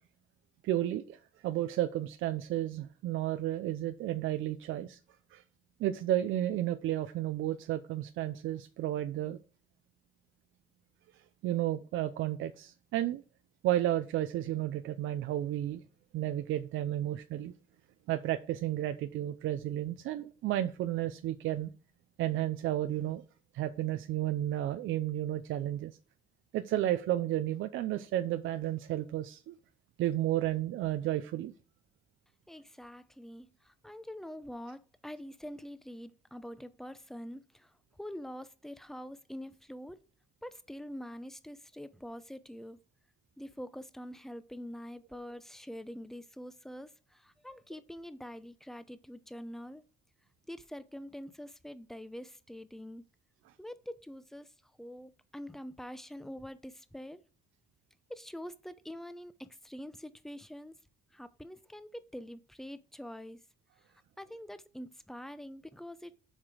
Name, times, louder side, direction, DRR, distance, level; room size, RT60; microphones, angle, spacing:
voice 1, 0.6-5.0 5.3-5.4 5.8-9.4 11.4-13.2 13.6-15.8 16.1-17.5 18.1-21.7 22.2-23.2 23.5-25.9 26.5-29.6 30.0-31.5, right 13 dB, 85° right, 0.6 m, -32 dB
voice 2, 32.5-40.0 40.4-42.8 43.4-49.8 50.5-53.0 53.6-57.2 58.1-60.8 61.1-63.4 64.2-66.1, equal, ahead, 0.7 m, -45 dB
7.3 x 4.9 x 4.9 m
cardioid pair, 90°, 20 cm